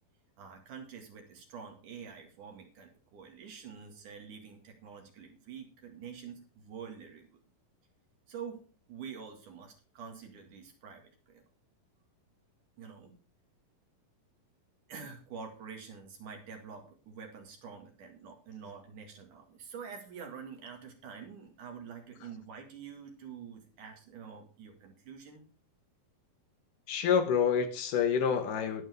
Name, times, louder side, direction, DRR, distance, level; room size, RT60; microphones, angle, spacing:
voice 1, 0.4-7.3 8.3-8.6 8.9-11.4 12.8-13.1 14.9-25.4, right 6 dB, 65° right, 2 dB, 3.5 m, -47 dB
voice 2, 26.9-28.9, left 7 dB, 70° left, 7 dB, 2.8 m, -28 dB
19.5 x 7.4 x 3.5 m, 0.40 s
omnidirectional pair, 4.0 m